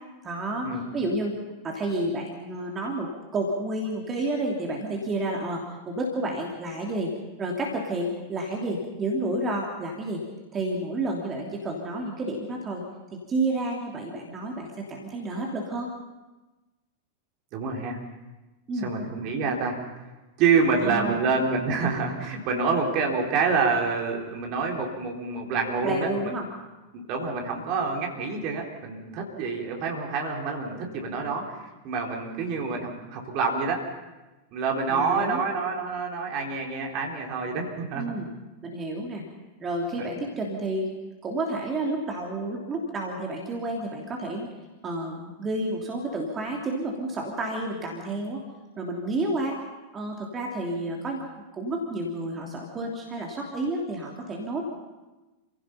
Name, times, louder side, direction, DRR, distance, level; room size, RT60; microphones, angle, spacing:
voice 1, 0.2-1.3 1.6-7.1 7.4-10.2 10.5-12.8 13.3-15.9 18.7-18.9 20.8-21.2 25.8-26.4 34.9-35.4 37.9-38.3 38.6-39.2 39.6-40.9 41.2-44.5 44.8-48.4 48.8-49.6 49.9-51.2 51.5-54.7, right 2 dB, 25° right, 0 dB, 3.1 m, -30 dB
voice 2, 17.5-18.0 18.8-19.8 20.4-26.3 26.9-33.8 34.5-38.1, right 4 dB, 40° right, 1 dB, 3.9 m, -27 dB
29.0 x 16.5 x 5.7 m, 1.1 s
figure-of-eight pair, 90°, 0 cm